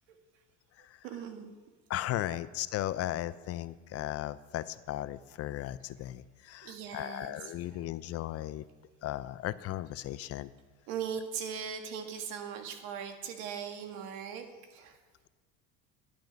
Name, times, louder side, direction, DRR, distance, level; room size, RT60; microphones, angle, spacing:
voice 1, 1.0-1.6 6.6-7.5 10.9-14.4 14.7-15.0, right 7 dB, 80° right, 6 dB, 1.7 m, -39 dB
voice 2, 1.9-8.7 9.0-10.5, left 14 dB, 45° left, 15 dB, 0.6 m, -36 dB
12.0 x 10.0 x 5.3 m, 1.4 s
supercardioid pair, 110°, 33 cm